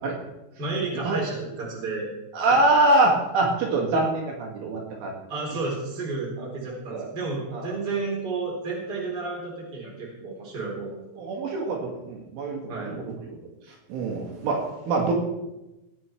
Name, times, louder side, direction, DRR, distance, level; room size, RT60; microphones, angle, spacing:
voice 1, 0.6-2.1 2.5-2.6 5.3-10.9 11.2-11.3 12.7-13.0, right 3 dB, 20° right, -3 dB, 3.5 m, -31 dB
voice 2, 2.3-5.1 6.4-6.5 6.9-7.1 7.5-7.7 11.2-13.0 13.9-15.1, right 2 dB, 70° right, -1 dB, 4.2 m, -24 dB
17.5 x 8.7 x 4.5 m, 0.97 s
omnidirectional pair, 6.0 m